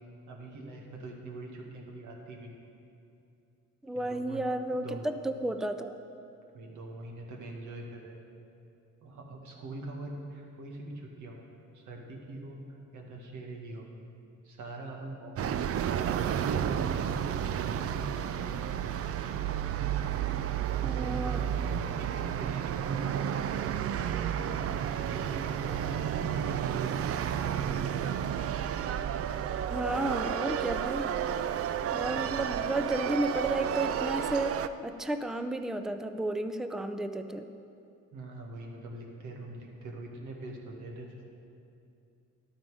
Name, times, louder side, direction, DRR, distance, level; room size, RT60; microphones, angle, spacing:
voice 1, 0.3-2.5 3.9-4.4 4.7-5.1 6.5-8.3 9.0-13.9 14.4-15.6 15.9-19.1 21.0-22.1 22.4-27.6 32.1-32.2 38.1-41.3, right 2 dB, 80° right, 0 dB, 1.8 m, -44 dB
voice 2, 3.8-6.0 20.8-21.4 29.7-31.2 31.9-37.5, right 1 dB, ahead, 8 dB, 0.5 m, -32 dB
sound 1, 15.4-34.7, right 9 dB, 50° right, 0.5 m, -31 dB
12.0 x 8.9 x 4.9 m, 2.6 s
cardioid pair, 90°, 30 cm